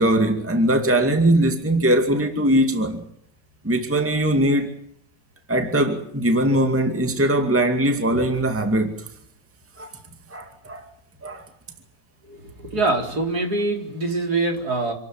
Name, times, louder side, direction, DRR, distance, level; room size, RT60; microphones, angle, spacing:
voice 1, 0.0-3.0 3.6-4.8 5.5-8.9 9.8-9.9 10.3-10.8 11.2-11.4, right 1 dB, 5° right, 2.2 m, -20 dB
voice 2, 12.3-14.9, right 2 dB, 55° right, 4.5 m, -24 dB
28.0 x 12.5 x 9.3 m
omnidirectional pair, 2.0 m